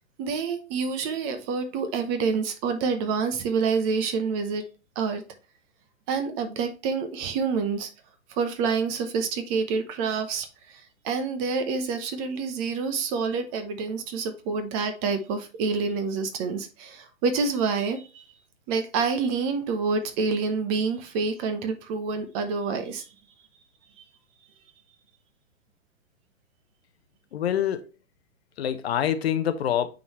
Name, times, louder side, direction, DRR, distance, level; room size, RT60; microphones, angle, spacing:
voice 1, 0.2-4.7 5.0-5.2 6.1-7.9 8.3-18.2 18.7-23.1 24.0-24.1, right 5 dB, 25° right, 0.9 m, -27 dB
voice 2, 27.3-27.9 28.6-29.9, left 10 dB, 50° left, 0.8 m, -25 dB
8.6 x 3.9 x 3.1 m
figure-of-eight pair, 120°, 39 cm